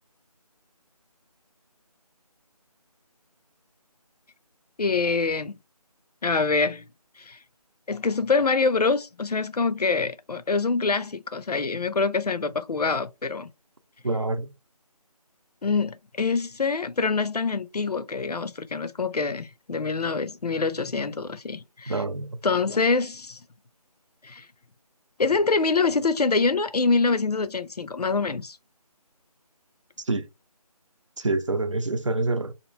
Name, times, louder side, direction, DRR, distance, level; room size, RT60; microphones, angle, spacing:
voice 1, 4.8-5.5 6.2-6.8 7.2-7.4 7.9-13.5 15.6-22.0 22.4-23.4 24.2-24.5 25.2-28.6, left 4 dB, 80° left, 0.6 m, -25 dB
voice 2, 14.0-14.5 21.9-22.4 30.0-30.3 31.2-32.5, right 2 dB, 50° right, 0.6 m, -26 dB
2.9 x 2.6 x 4.3 m
figure-of-eight pair, 165°, 20 cm